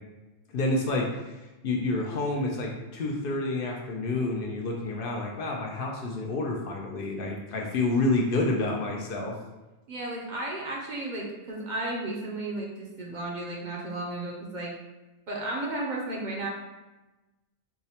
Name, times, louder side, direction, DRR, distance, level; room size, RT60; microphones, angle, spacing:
voice 1, 0.5-1.4 1.6-9.4, left 2 dB, 65° left, 0 dB, 0.7 m, -29 dB
voice 2, 9.9-14.7 15.3-16.5, right 2 dB, 55° right, -2 dB, 0.6 m, -33 dB
4.6 x 2.1 x 2.8 m, 1.1 s
omnidirectional pair, 1.1 m